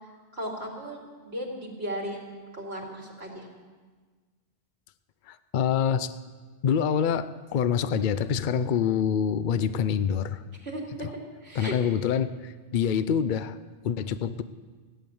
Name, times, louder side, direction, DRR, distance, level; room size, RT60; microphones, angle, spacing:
voice 1, 0.3-3.5 10.6-11.8, equal, 70° right, -1 dB, 2.8 m, -36 dB
voice 2, 5.3-6.1 6.6-10.4 11.6-13.6 13.8-14.4, left 7 dB, 55° left, 14 dB, 0.7 m, -26 dB
15.5 x 11.5 x 7.0 m, 1.4 s
omnidirectional pair, 1.1 m